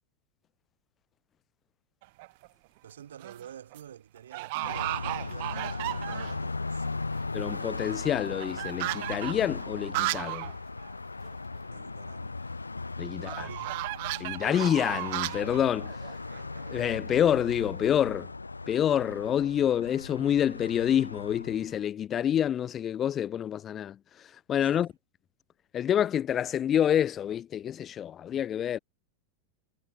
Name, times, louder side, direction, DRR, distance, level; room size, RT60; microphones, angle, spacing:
sound 1, 2.0-2.5 3.0-3.5 3.7-3.8 4.3-6.5 6.9-7.0 7.2-10.5 10.8-10.9 11.2-11.3 13.2-17.0, right 24 dB, 50° right, 0.3 m, -35 dB
voice 1, 2.8-7.2 11.7-12.6 13.1-14.0 24.6-24.9, right 9 dB, 65° right, 1.1 m, -49 dB
Car passing by, 4.6-21.8, left 3 dB, 80° left, 0.6 m, -38 dB
voice 2, 7.3-10.5 13.0-13.5 14.2-16.0 16.7-18.3 18.7-24.0 24.5-24.9 25.7-28.8, left 10 dB, 25° left, 0.4 m, -27 dB
figure-of-eight pair, 90°, 0 cm